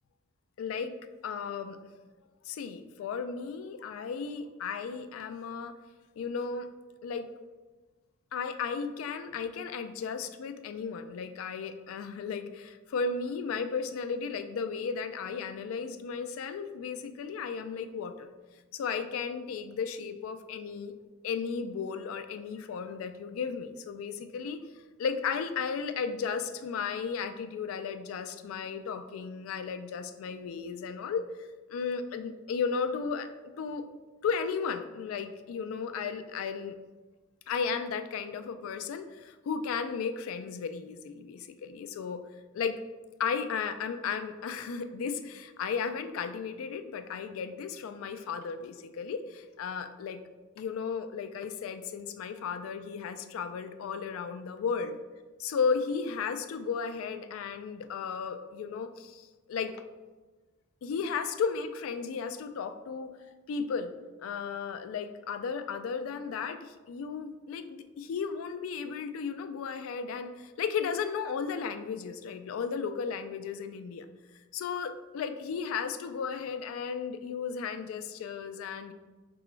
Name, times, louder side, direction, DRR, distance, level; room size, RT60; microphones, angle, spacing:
voice 1, 0.6-0.9 1.2-1.8 2.5-5.7 6.2-6.7 7.0-7.3 8.3-18.3 18.7-20.9 21.2-24.6 25.0-31.2 31.7-33.3 33.6-33.9 34.2-36.8 37.5-42.2 42.5-42.8 43.2-50.2 50.6-55.0 55.4-59.7 60.8-63.1 63.5-63.9 64.2-74.0 74.5-78.9, left 6 dB, 80° left, 10 dB, 0.3 m, -34 dB
4.8 x 2.3 x 3.1 m, 1.2 s
head